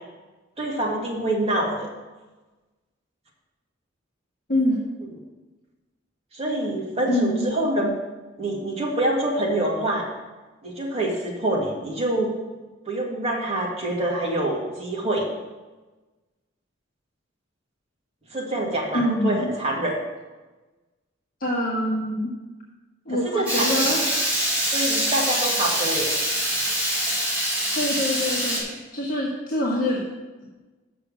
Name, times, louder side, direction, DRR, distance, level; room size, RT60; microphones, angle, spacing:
voice 1, 0.6-1.9 6.3-7.9 8.4-10.0 10.6-12.3 12.9-15.3 18.3-19.9 23.1-24.1 24.7-26.1, right 1 dB, 30° right, -3 dB, 2.1 m, -26 dB
voice 2, 4.5-4.8 7.1-7.5 18.9-19.5 21.4-22.3 23.0-24.0 27.7-30.0, left 1 dB, 45° left, -4 dB, 1.4 m, -25 dB
Water tap faucet / Liquid, 23.5-28.6, equal, 10° right, 3.5 m, -24 dB
6.9 x 6.3 x 7.4 m, 1.2 s
head